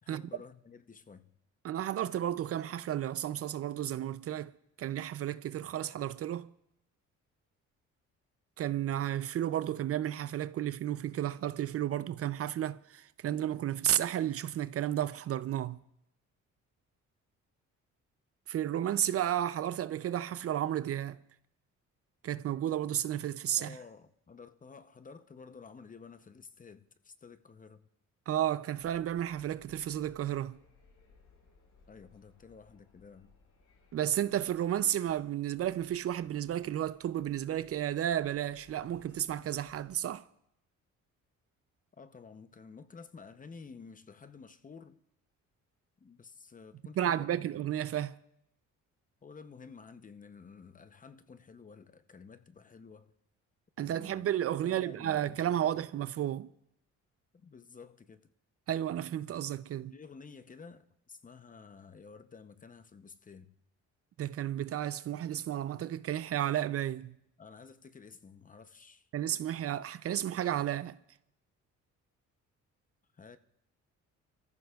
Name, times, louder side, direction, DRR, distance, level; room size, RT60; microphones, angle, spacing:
voice 1, 0.0-1.3 23.5-27.9 31.9-33.3 41.9-45.0 46.0-47.5 49.2-53.1 53.8-55.8 57.3-58.2 59.9-63.5 67.4-69.1 73.1-73.4, left 5 dB, 25° left, 0.7 m, -52 dB
voice 2, 1.6-4.5 4.8-6.5 8.6-15.8 18.5-21.2 22.2-23.8 28.3-30.6 33.9-40.3 47.0-48.2 53.8-56.5 58.7-59.9 64.2-67.1 69.1-71.0, right 11 dB, 50° right, 0.4 m, -32 dB
sound 1, 28.7-40.1, left 4 dB, 75° left, 5.2 m, -64 dB
29.0 x 14.5 x 2.3 m
cardioid pair, 90°, 30 cm